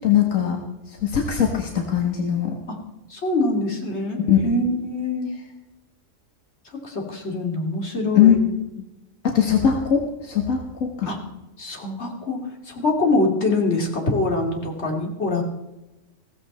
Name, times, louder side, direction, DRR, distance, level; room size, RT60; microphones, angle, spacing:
voice 1, 0.0-0.6 0.9-2.6 4.3-4.4 8.2-8.4 9.2-11.1, left 9 dB, 80° left, 1 dB, 1.9 m, -20 dB
voice 2, 3.1-5.3 6.7-8.4 11.1-11.2 11.6-15.4, left 2 dB, 55° left, 1 dB, 3.0 m, -24 dB
16.0 x 14.5 x 4.3 m, 0.99 s
omnidirectional pair, 1.3 m